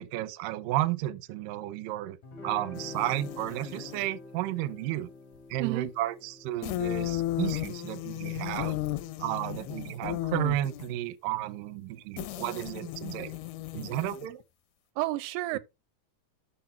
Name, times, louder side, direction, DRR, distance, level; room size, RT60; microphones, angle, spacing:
voice 1, 0.0-2.2 2.4-5.1 5.5-8.8 9.2-13.4 13.7-14.4 15.5-15.6, right 14 dB, 75° right, 2.2 m, -32 dB
Guitar, 2.2-9.4, left 2 dB, 55° left, 4.9 m, -48 dB
sound 1, 2.8-4.1 6.6-10.9 12.2-14.4, left 15 dB, 85° left, 2.7 m, -35 dB
voice 2, 5.6-5.9 15.0-15.6, right 18 dB, 90° right, 2.7 m, -30 dB
12.0 x 4.3 x 4.4 m
omnidirectional pair, 4.6 m